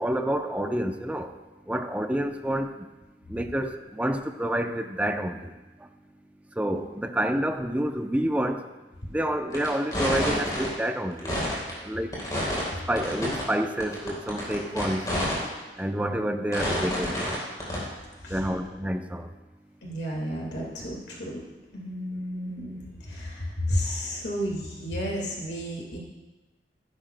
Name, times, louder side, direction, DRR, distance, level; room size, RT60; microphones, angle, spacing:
voice 1, 0.0-1.3 1.7-2.9 3.3-5.5 6.6-8.7 9.1-11.3 11.8-12.2 12.9-15.1 15.8-17.4 18.3-19.3, right 1 dB, 10° right, 6 dB, 0.6 m, -28 dB
Static Glitch, 9.5-9.7 9.9-10.7 11.1-11.7 12.1-12.7 13.0-13.4 13.8-15.4 15.8-15.9 16.5-17.4 17.6-17.8, left 1 dB, 20° left, 3.6 m, -28 dB
voice 2, 19.8-21.4 21.7-26.0, equal, 70° left, -2 dB, 1.9 m, -32 dB
15.0 x 11.0 x 2.2 m, 1.1 s
head